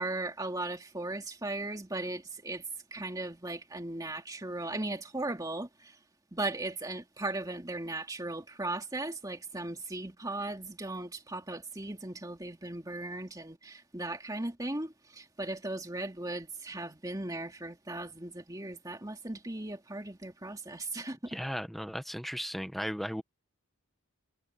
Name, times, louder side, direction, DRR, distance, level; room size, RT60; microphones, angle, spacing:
voice 1, 0.0-2.6 2.9-6.0 6.3-21.4, right 2 dB, 15° right, 2.4 m, -37 dB
voice 2, 21.3-23.2, equal, ahead, 1.3 m, -36 dB
head